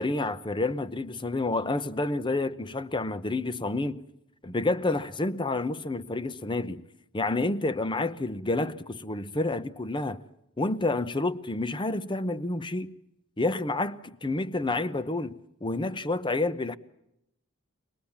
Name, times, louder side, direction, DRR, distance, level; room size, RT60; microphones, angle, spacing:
voice 1, 0.0-4.0 4.4-6.8 7.1-10.2 10.6-13.0 13.4-16.8, left 2 dB, 25° left, 0.8 m, -29 dB
24.0 x 20.5 x 7.2 m
head